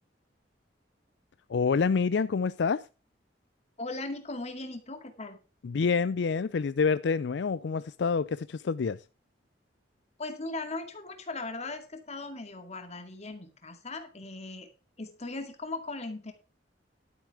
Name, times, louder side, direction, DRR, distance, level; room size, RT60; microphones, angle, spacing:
voice 1, 1.5-2.8 5.6-9.0, left 5 dB, 70° left, 0.4 m, -27 dB
voice 2, 3.8-5.4 10.2-14.7 15.0-16.3, left 2 dB, 40° left, 2.2 m, -38 dB
12.0 x 7.7 x 4.8 m
head